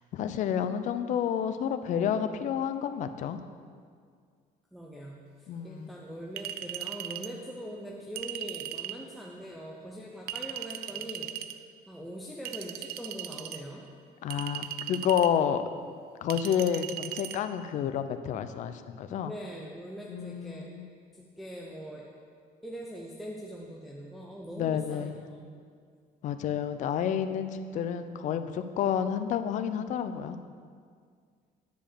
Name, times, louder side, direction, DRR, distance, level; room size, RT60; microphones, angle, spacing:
voice 1, 0.1-3.4 5.5-5.9 14.2-15.6 16.2-19.3 20.1-20.9 24.6-25.2 26.2-30.4, left 8 dB, 50° left, 10 dB, 0.5 m, -30 dB
voice 2, 4.7-13.8 19.2-20.7 21.1-22.1 22.6-25.1 25.4-25.5, equal, ahead, -3 dB, 0.6 m, -42 dB
Chink clink, 6.4-7.3 8.2-9.0 10.3-11.5 12.5-13.6 14.3-15.3 16.3-17.4, right 12 dB, 80° right, 0.5 m, -38 dB
10.0 x 5.1 x 6.8 m, 2.1 s
cardioid pair, 175°, 16 cm